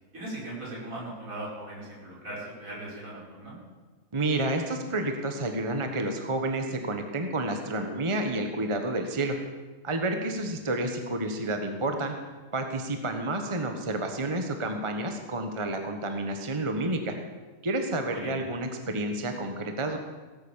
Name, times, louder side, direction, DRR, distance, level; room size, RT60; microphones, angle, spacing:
voice 1, 0.1-3.6 18.1-18.3, right 1 dB, 65° right, -6 dB, 6.5 m, -39 dB
voice 2, 4.1-9.4 9.8-12.1 12.5-17.1 17.6-20.0, right 2 dB, 20° right, 5 dB, 1.2 m, -30 dB
18.5 x 8.6 x 7.3 m, 1.3 s
omnidirectional pair, 1.5 m